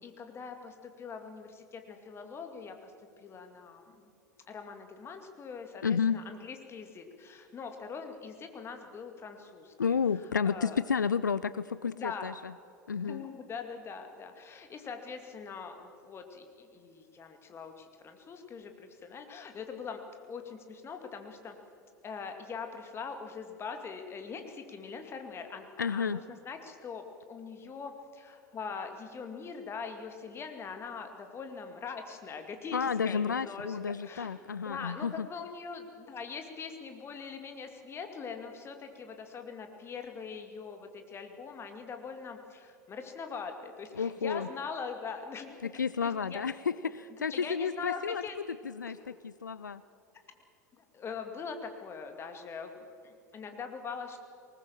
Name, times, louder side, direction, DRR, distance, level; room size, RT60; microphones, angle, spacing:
voice 1, 0.0-2.9 3.2-4.1 4.5-10.0 10.4-10.8 12.0-12.3 13.0-21.5 22.0-45.7 46.0-46.4 47.2-48.4 48.9-49.1 50.8-54.2, left 5 dB, 25° left, 6 dB, 2.3 m, -42 dB
voice 2, 5.8-6.2 9.8-12.5 12.9-13.2 25.8-26.2 32.7-35.3 44.0-44.5 45.6-48.2 48.8-49.8, left 6 dB, 80° left, 17 dB, 0.4 m, -31 dB
20.0 x 19.0 x 7.4 m, 2.6 s
figure-of-eight pair, 80°, 10 cm